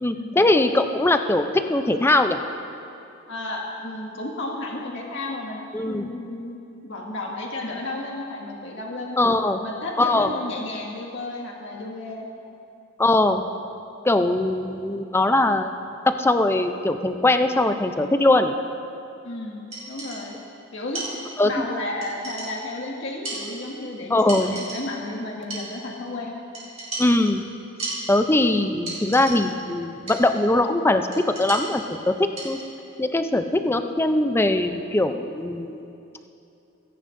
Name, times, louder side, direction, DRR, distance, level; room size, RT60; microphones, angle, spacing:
voice 1, 0.0-2.4 5.7-6.1 9.2-9.6 10.0-10.3 13.0-13.4 14.0-15.7 16.0-18.5 21.4-21.6 24.1-24.6 27.0-27.4 28.1-32.6 33.0-35.8, left 2 dB, 10° left, 8 dB, 0.4 m, -21 dB
voice 2, 3.3-9.2 9.6-12.3 19.2-20.3 20.7-21.1 21.4-26.4, left 2 dB, 60° left, -2 dB, 1.9 m, -33 dB
sound 1, 19.7-20.5 20.9-21.6 22.0-22.8 23.2-24.0 24.3-25.1 25.5-26.1 26.5-28.5 28.9-29.7 30.1-30.6 31.1-32.9, right 2 dB, 30° right, 3.0 m, -36 dB
24.5 x 10.0 x 2.6 m, 2.7 s
head